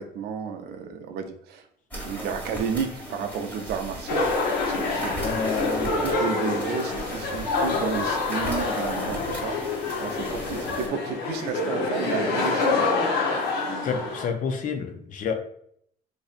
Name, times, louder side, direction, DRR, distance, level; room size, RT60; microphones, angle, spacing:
voice 1, 0.0-1.6 2.0-4.3 4.6-5.4 5.8-9.6 10.0-12.9 13.6-13.9, right 6 dB, 75° right, 6 dB, 0.5 m, -32 dB
sound 1, 1.9-10.9, right 1 dB, 10° left, 1.4 m, -37 dB
sound 2, 4.1-14.2, left 3 dB, 85° left, 0.8 m, -27 dB
voice 2, 5.2-5.9 13.8-15.3, left 5 dB, 50° left, 6 dB, 0.5 m, -29 dB
4.0 x 2.6 x 2.4 m, 0.68 s
cardioid pair, 110°, 17 cm